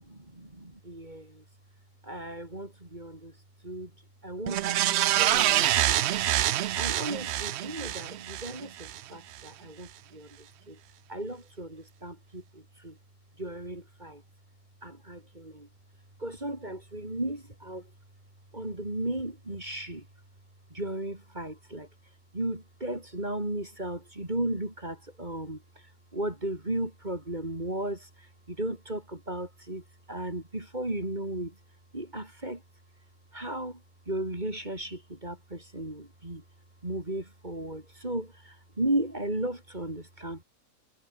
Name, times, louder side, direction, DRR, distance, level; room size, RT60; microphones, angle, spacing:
voice 1, 0.0-1.4 2.0-3.3 3.6-3.9 4.2-6.1 6.7-10.8 11.1-13.0 13.4-14.2 14.8-15.7 16.2-17.9 18.5-20.1 20.7-21.9 22.3-25.9 26.1-31.5 31.9-32.6 33.3-33.8 34.1-36.4 36.8-40.4, right 1 dB, 30° right, 4.7 m, -35 dB
sound 1, 4.5-9.0 9.4-9.5, right 13 dB, 65° right, 0.7 m, -26 dB
omnidirectional pair, 1.5 m